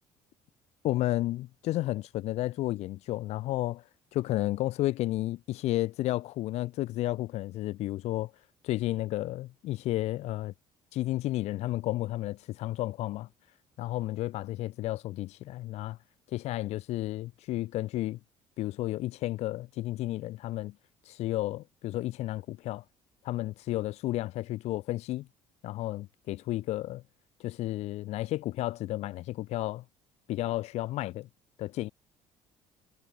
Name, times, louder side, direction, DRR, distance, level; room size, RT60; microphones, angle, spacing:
voice 1, 0.8-3.8 4.1-8.3 8.6-10.5 10.9-13.3 13.8-16.0 16.3-18.2 18.6-20.7 21.0-22.8 23.2-25.3 25.6-27.0 27.4-29.8 30.3-31.3 31.6-31.9, left 16 dB, 70° left, 1.1 m, -32 dB
cardioid pair, 120°, 12 cm